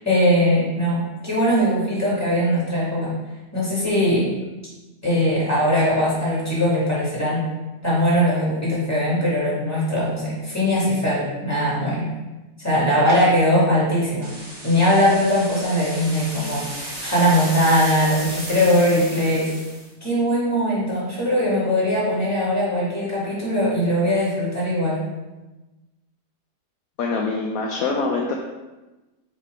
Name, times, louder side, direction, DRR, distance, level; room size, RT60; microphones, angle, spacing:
voice 1, 0.0-3.1 3.5-4.3 5.0-7.4 7.8-12.1 12.6-14.3 14.6-19.5 20.0-25.0, equal, 10° left, -7 dB, 2.2 m, -20 dB
sound 1, 14.2-19.9, right 1 dB, 25° right, 1.4 m, -34 dB
voice 2, 27.0-28.3, left 4 dB, 65° left, 0 dB, 1.0 m, -24 dB
6.4 x 3.3 x 5.1 m, 1.1 s
omnidirectional pair, 1.7 m